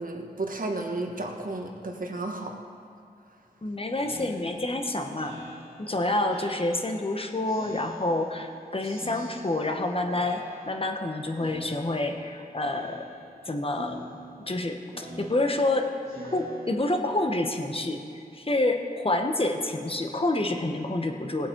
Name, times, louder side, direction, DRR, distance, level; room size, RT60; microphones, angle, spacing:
voice 1, 0.0-2.6, right 2 dB, 55° right, 2 dB, 1.5 m, -33 dB
voice 2, 3.6-5.4 5.8-10.4 10.7-13.0 13.5-14.0 14.5-15.9 16.3-18.0 18.3-21.5, left 2 dB, 35° left, 4 dB, 1.2 m, -28 dB
Speech synthesizer, 3.9-7.1 7.5-8.5 8.8-9.8 10.1-11.0 11.4-12.3 12.6-13.4 13.7-17.3, equal, 90° right, 3.2 m, -45 dB
19.0 x 8.3 x 4.6 m, 2.4 s
wide cardioid pair, 65°, 16 cm